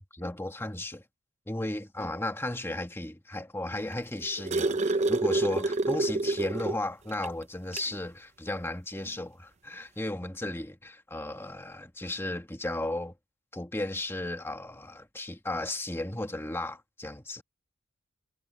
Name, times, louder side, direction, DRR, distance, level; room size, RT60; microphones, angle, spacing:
voice 1, 0.1-1.0 1.5-13.1 13.5-17.4, left 1 dB, 10° left, 1.6 m, -35 dB
sound 1, 3.9-6.8 7.2-7.3 7.7-7.9 9.1-9.2, right 2 dB, 35° right, 0.6 m, -27 dB
head